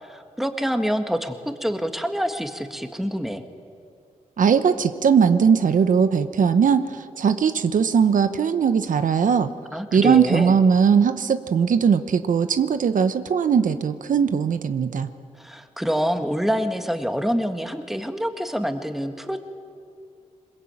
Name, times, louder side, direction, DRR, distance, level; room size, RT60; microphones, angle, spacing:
voice 1, 0.0-3.4 9.7-10.6 15.4-19.4, equal, ahead, 7 dB, 1.7 m, -26 dB
voice 2, 4.4-9.5 9.9-15.1, right 6 dB, 85° right, 11 dB, 0.9 m, -19 dB
21.5 x 21.5 x 8.9 m, 2.3 s
cardioid pair, 80°, 13 cm